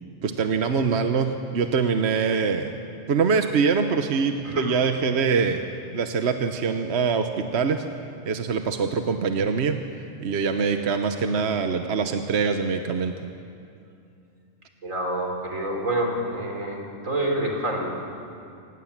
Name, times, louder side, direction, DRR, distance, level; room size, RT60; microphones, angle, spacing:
voice 1, 0.2-2.7 3.1-5.6 5.9-7.8 8.2-9.8 10.2-13.3, right 5 dB, 60° right, 7 dB, 1.2 m, -24 dB
voice 2, 14.8-17.9, right 1 dB, 85° right, 1 dB, 4.1 m, -27 dB
26.0 x 19.0 x 7.4 m, 2.5 s
omnidirectional pair, 1.3 m